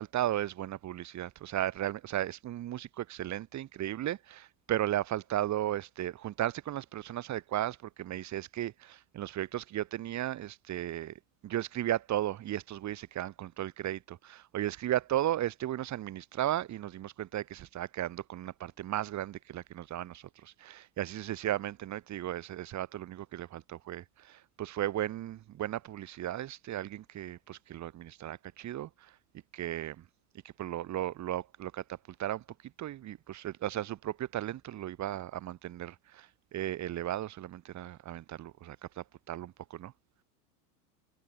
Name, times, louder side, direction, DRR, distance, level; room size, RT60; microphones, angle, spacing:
voice 1, 0.0-29.1 29.5-30.0 30.4-32.4 32.8-39.9, right 13 dB, 35° right, 2.4 m, -35 dB
hypercardioid pair, 110°, 48 cm